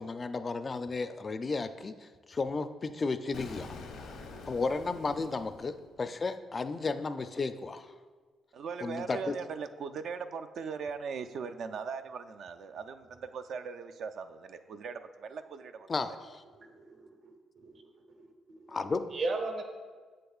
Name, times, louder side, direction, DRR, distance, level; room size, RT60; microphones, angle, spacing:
voice 1, 0.2-1.9 2.3-3.7 4.5-5.7 6.0-7.9 8.8-9.3 15.9-16.4 18.7-19.1, left 4 dB, 35° left, 10 dB, 0.3 m, -33 dB
Explosion, 3.3-6.2, left 3 dB, 80° left, 0.7 m, -46 dB
voice 2, 8.5-15.0 15.3-15.9, right 5 dB, 65° right, 8 dB, 0.3 m, -39 dB
voice 3, 16.5-18.3 18.6-18.8 19.1-19.6, right 3 dB, 45° right, 5 dB, 0.8 m, -37 dB
7.7 x 6.6 x 2.4 m, 1.5 s
cardioid pair, 90°, 0 cm